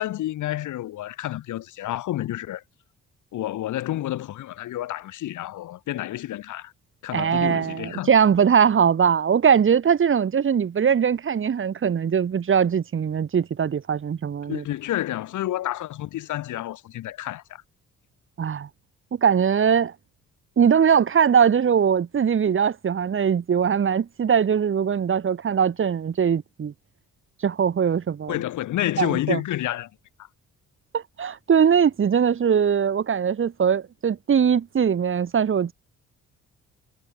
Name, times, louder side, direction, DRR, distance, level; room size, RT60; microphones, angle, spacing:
voice 1, 0.0-2.6 3.3-6.7 7.0-8.1 14.5-17.6 28.3-29.9 30.2-30.3, left 14 dB, 80° left, 1.9 m, -29 dB
voice 2, 7.1-14.6 18.4-18.7 19.2-19.9 20.6-26.7 27.4-28.3 29.0-29.4 30.9-35.7, right 7 dB, 40° right, 1.5 m, -21 dB
cardioid pair, 90°, 30 cm